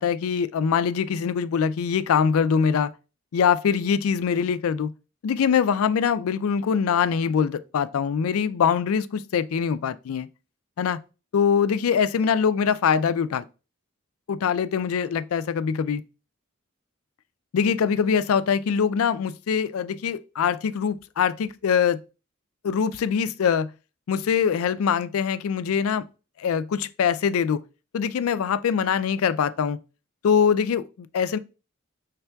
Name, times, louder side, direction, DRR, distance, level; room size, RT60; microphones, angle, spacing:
voice 1, 0.0-2.9 3.3-4.9 5.2-10.3 10.8-11.0 11.3-13.4 14.3-16.0 17.5-22.0 22.6-23.7 24.1-26.1 26.4-27.6 27.9-29.8 30.2-31.4, left 7 dB, 85° left, 0.4 m, -23 dB
5.7 x 3.3 x 2.2 m
head